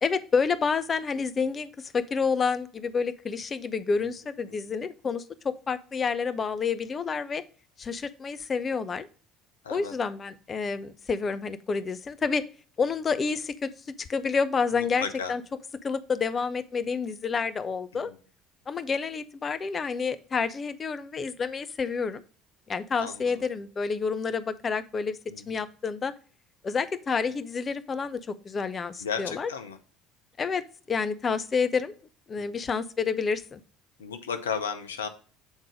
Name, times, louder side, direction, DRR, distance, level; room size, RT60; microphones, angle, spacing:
voice 1, 0.0-7.4 7.8-9.1 9.7-12.4 12.8-13.7 14.1-15.4 15.8-18.1 18.7-22.2 22.7-25.2 25.5-26.1 26.6-29.5 30.4-30.6 30.9-31.9 32.3-33.6, left 5 dB, 35° left, 13 dB, 0.7 m, -29 dB
voice 2, 14.7-15.3 17.9-18.1 23.0-23.4 25.3-25.6 29.0-29.8 32.4-32.6 34.0-35.1, left 6 dB, 85° left, 9 dB, 0.7 m, -35 dB
7.2 x 3.8 x 5.0 m, 0.40 s
hypercardioid pair, 65°, 0 cm